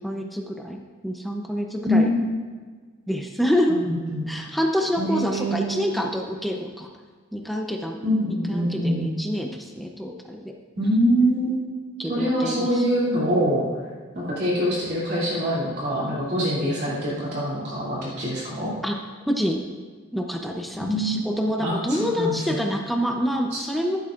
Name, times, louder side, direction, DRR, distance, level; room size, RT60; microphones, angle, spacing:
voice 1, 0.0-2.3 3.1-3.8 4.3-6.9 7.3-8.0 8.5-10.5 12.0-12.8 18.8-19.0 19.3-19.6 20.1-24.0, equal, ahead, 1 dB, 0.6 m, -27 dB
voice 2, 1.9-2.2 3.7-4.2 5.0-6.0 8.0-9.1 10.8-13.6 14.1-18.7 20.9-21.2 21.6-22.6 23.5-23.6, equal, 50° right, -7 dB, 2.8 m, -24 dB
14.5 x 11.0 x 2.5 m, 1.5 s
head